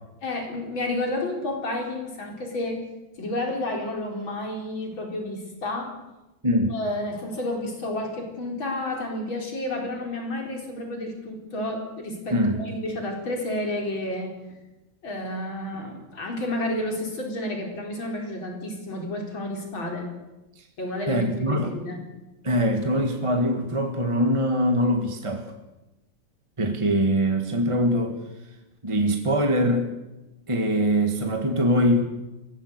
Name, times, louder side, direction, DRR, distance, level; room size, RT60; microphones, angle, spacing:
voice 1, 0.2-2.8 3.2-5.9 6.7-14.3 15.0-20.1 20.8-22.0, left 1 dB, 90° left, 1 dB, 5.2 m, -31 dB
voice 2, 21.1-21.7 22.4-25.4 26.6-28.2 28.8-29.9 30.5-32.0, equal, 15° right, 4 dB, 1.6 m, -23 dB
22.5 x 17.0 x 8.2 m, 1.0 s
omnidirectional pair, 2.1 m